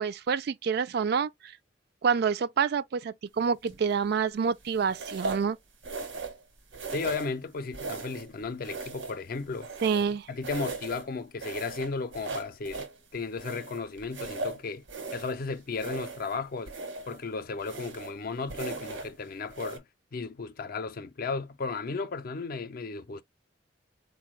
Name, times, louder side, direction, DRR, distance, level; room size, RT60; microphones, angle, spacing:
voice 1, 0.0-1.5 2.0-5.6 9.8-10.3, right 6 dB, 60° right, 0.3 m, -27 dB
sound 1, 3.7-4.0 4.9-5.5 5.8-6.4 6.7-7.4 7.7-8.3 8.6-10.1 10.4-11.1 11.4-13.0 13.4-15.4 15.7-16.4 16.7-17.2 17.6-18.2 18.5-19.1 19.5-19.8, right 3 dB, 85° right, 1.1 m, -38 dB
voice 2, 6.9-9.7 10.3-12.9 13.1-14.8 15.1-16.7 17.1-19.8 20.1-23.2, left 4 dB, 50° left, 0.5 m, -34 dB
4.1 x 2.2 x 3.1 m
head